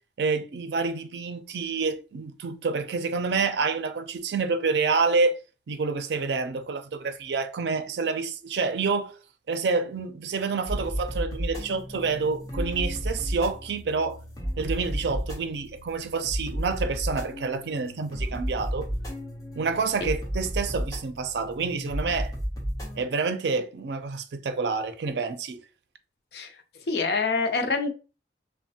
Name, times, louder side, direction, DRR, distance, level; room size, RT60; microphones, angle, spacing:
voice 1, 0.2-5.4 5.7-9.1 9.5-14.2 14.6-18.9 19.6-22.3 23.0-25.6, right 4 dB, 75° right, 0.4 m, -28 dB
sound 1, 10.7-23.0, equal, 20° left, 0.7 m, -33 dB
voice 2, 26.9-27.9, left 4 dB, 65° left, 0.5 m, -25 dB
3.1 x 2.1 x 2.7 m
head